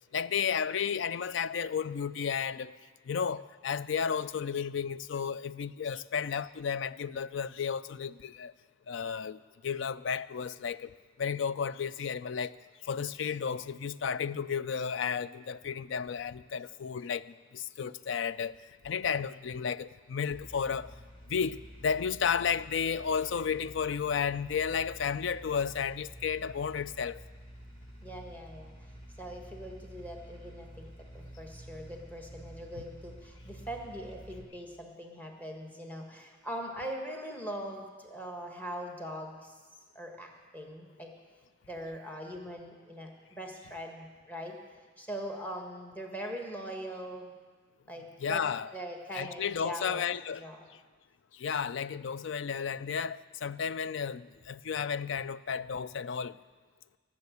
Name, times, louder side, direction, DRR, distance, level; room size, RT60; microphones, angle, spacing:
voice 1, 0.1-2.8 3.1-8.5 8.9-12.6 12.8-18.6 18.8-20.9 21.3-27.2 48.2-48.7 49.1-50.5 51.3-56.4, left 7 dB, 65° left, 0.4 m, -33 dB
sound 1, 20.3-34.4, equal, 35° left, 2.8 m, -49 dB
voice 2, 28.0-28.7 29.2-39.6 39.9-41.1 41.7-44.6 45.0-47.3 47.9-48.4 48.7-50.0 50.4-50.7, equal, 10° left, 1.5 m, -41 dB
18.5 x 7.2 x 8.4 m
head